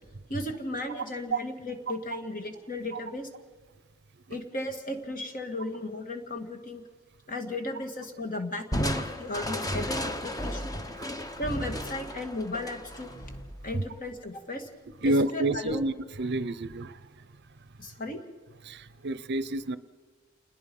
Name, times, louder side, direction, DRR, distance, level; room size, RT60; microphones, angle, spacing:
voice 1, 0.3-3.3 4.3-6.8 7.3-10.7 11.4-13.1 13.6-14.7 15.0-15.8 17.8-18.2, left 1 dB, 40° left, 5 dB, 2.3 m, -35 dB
Crushing, 8.7-14.1, equal, 20° left, 1.2 m, -34 dB
voice 2, 15.0-16.9 18.7-19.8, right 2 dB, 55° right, 15 dB, 0.8 m, -28 dB
28.5 x 20.5 x 5.5 m, 1.4 s
head